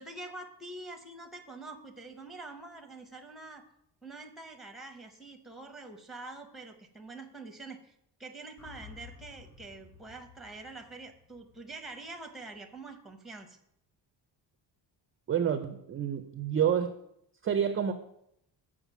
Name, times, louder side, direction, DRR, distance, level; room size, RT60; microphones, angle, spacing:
voice 1, 0.0-3.6 4.0-7.9 8.2-13.6, right 2 dB, ahead, 5 dB, 0.7 m, -45 dB
sound 1, 8.6-12.8, left 6 dB, 30° left, 3.1 m, -54 dB
voice 2, 15.3-17.0 17.4-17.9, right 8 dB, 30° right, 8 dB, 0.4 m, -28 dB
7.2 x 4.8 x 7.0 m, 0.77 s
cardioid pair, 170°, 45 cm